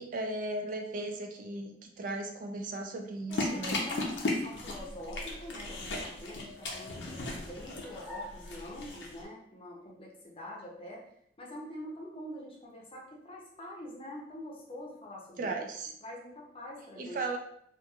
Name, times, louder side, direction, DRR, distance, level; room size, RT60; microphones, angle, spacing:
voice 1, 0.0-3.8 15.4-15.9 17.0-17.4, right 2 dB, 50° right, 3 dB, 0.3 m, -36 dB
sound 1, 3.3-9.2, left 2 dB, 85° left, 0.6 m, -36 dB
voice 2, 3.3-11.0 11.4-15.5 16.0-17.2, left 1 dB, 30° left, -2 dB, 0.6 m, -45 dB
sound 2, 4.6-9.1, left 2 dB, 10° right, 1.0 m, -51 dB
2.9 x 2.3 x 2.3 m, 0.71 s
head